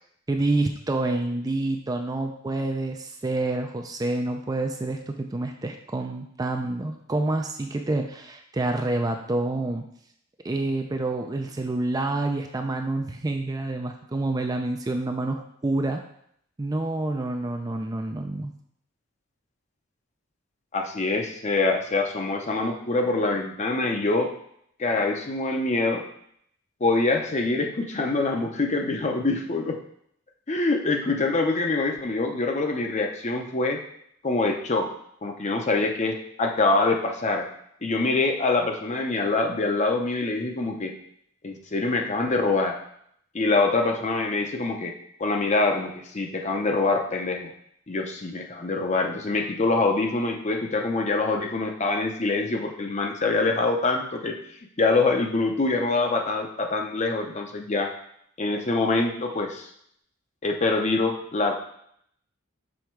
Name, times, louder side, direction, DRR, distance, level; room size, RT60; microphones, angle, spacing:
voice 1, 0.3-9.9 10.4-16.0 16.6-18.5, right 2 dB, 20° right, 4 dB, 0.4 m, -28 dB
voice 2, 20.7-24.3 24.8-26.0 26.8-29.8 30.5-33.8 34.2-34.9 35.2-37.5 37.8-40.9 41.4-42.8 43.3-44.9 45.2-47.5 47.9-54.4 54.8-57.9 58.4-59.7 60.4-61.5, left 3 dB, 35° left, 2 dB, 0.7 m, -25 dB
6.4 x 3.5 x 4.5 m, 0.69 s
head